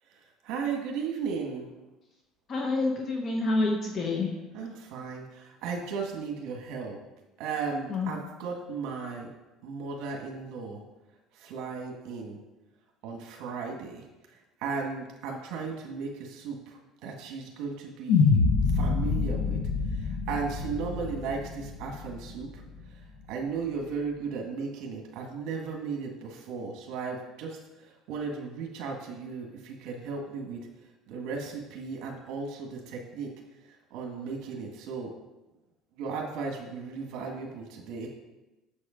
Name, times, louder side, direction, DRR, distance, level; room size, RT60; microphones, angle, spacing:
voice 1, 0.4-1.7 4.5-7.0 7.4-9.3 9.6-10.8 11.4-12.4 13.0-14.0 14.6-18.4 18.7-19.6 20.0-22.6 23.3-27.6 28.1-30.6 31.1-33.3 33.9-35.1 36.0-38.1, right 5 dB, 70° right, 0 dB, 1.6 m, -35 dB
voice 2, 2.5-4.3 7.9-8.1, left 3 dB, 35° left, 2 dB, 1.1 m, -28 dB
sound 1, 18.1-22.4, left 4 dB, 65° left, 0.9 m, -26 dB
8.3 x 7.2 x 5.0 m, 1.1 s
cardioid pair, 135°, 0 cm